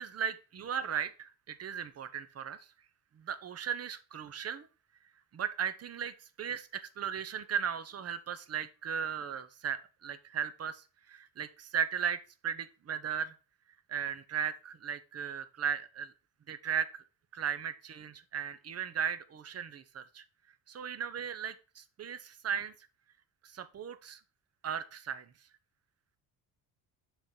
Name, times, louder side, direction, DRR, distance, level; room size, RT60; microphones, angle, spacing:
voice 1, 0.0-2.7 3.2-4.7 5.3-13.3 13.9-16.1 16.5-17.0 17.3-20.2 20.7-22.7 23.4-24.2 24.6-25.3, right 7 dB, 35° right, 12 dB, 0.7 m, -36 dB
6.9 x 3.8 x 4.2 m, 0.34 s
supercardioid pair, 85°, 42 cm